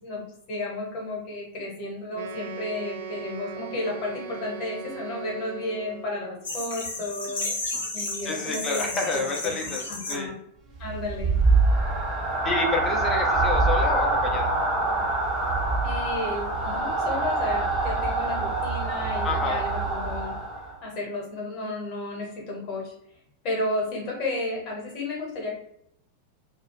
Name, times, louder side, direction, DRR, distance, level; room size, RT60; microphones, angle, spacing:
voice 1, 0.0-7.4 7.9-10.3 10.8-11.4 15.8-20.3 20.8-22.9 23.4-25.5, left 2 dB, 40° left, -1 dB, 1.0 m, -33 dB
Wind instrument woodwind instrument, 2.1-6.2, right 6 dB, 55° right, 0.3 m, -38 dB
sound 1, 6.4-10.1, left 2 dB, 65° left, 0.8 m, -32 dB
voice 2, 8.2-10.3 12.4-14.5 19.2-19.6, left 3 dB, 25° left, 2 dB, 0.5 m, -29 dB
sound 2, 10.8-20.8, right 2 dB, 25° right, 0.6 m, -25 dB
2.3 x 2.0 x 3.0 m, 0.74 s
figure-of-eight pair, 90°, 0 cm